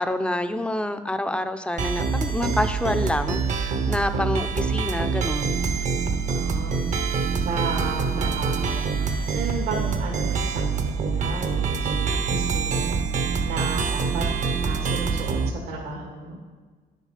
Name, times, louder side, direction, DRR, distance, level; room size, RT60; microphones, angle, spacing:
voice 1, 0.0-5.6, left 1 dB, 5° left, 9 dB, 0.5 m, -27 dB
sound 1, 1.8-15.5, right 5 dB, 45° right, 0.8 m, -25 dB
voice 2, 6.3-13.0 13.4-14.3 14.6-16.4, right 4 dB, 80° right, -3 dB, 1.9 m, -34 dB
10.0 x 6.5 x 5.1 m, 1.4 s
cardioid pair, 110°, 17 cm